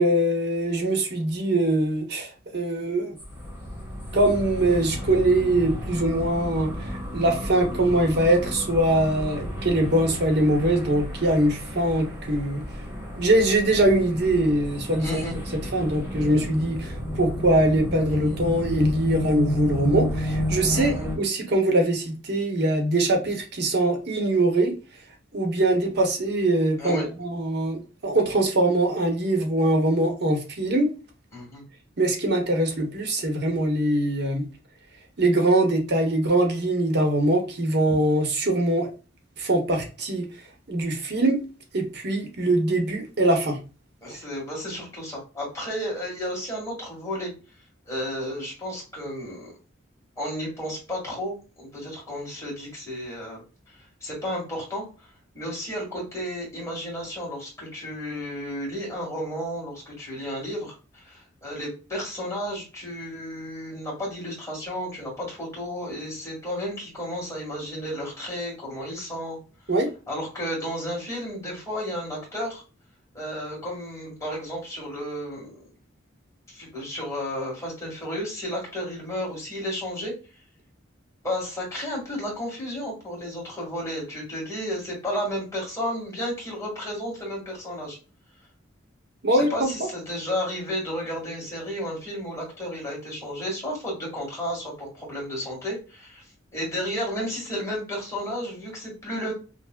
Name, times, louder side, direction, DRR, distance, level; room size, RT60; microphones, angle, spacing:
voice 1, 0.0-3.2 4.1-12.6 13.1-15.2 15.7-24.7 25.3-30.9 32.0-34.4 35.2-38.9 39.4-40.3 40.7-41.4 41.7-43.6 69.7-69.9 89.2-89.9, right 1 dB, 60° right, 0.8 m, -22 dB
sound 1, 3.2-21.2, equal, 10° right, 1.1 m, -31 dB
voice 2, 15.0-15.4 20.7-21.1 26.8-27.1 31.3-31.6 44.0-47.3 47.9-49.5 50.2-53.4 54.0-54.8 55.3-69.4 70.1-72.6 73.1-75.7 76.5-80.1 81.2-88.0 89.3-96.2 96.5-99.3, equal, 15° left, 1.8 m, -32 dB
5.5 x 2.1 x 2.2 m
head